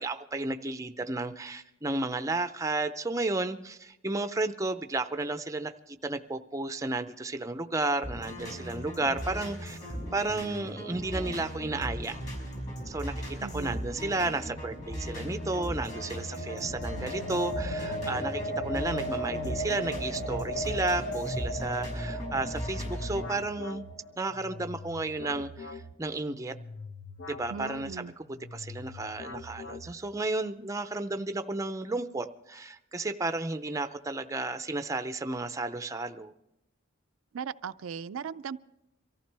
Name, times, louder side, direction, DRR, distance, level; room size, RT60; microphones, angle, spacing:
voice 1, 0.0-12.2 12.9-23.9 24.2-26.6 27.3-28.1 28.5-36.3, right 2 dB, 15° right, 9 dB, 0.5 m, -33 dB
sound 1, 8.0-23.3, equal, 35° left, 6.2 m, -38 dB
voice 2, 13.4-13.8 27.5-28.1 37.3-38.6, right 6 dB, 85° right, 12 dB, 0.4 m, -38 dB
sound 2, 14.8-24.8, equal, 85° left, 2.7 m, -37 dB
sound 3, 22.2-30.3, left 3 dB, 70° left, 0.9 m, -44 dB
24.0 x 14.5 x 3.4 m, 0.88 s
head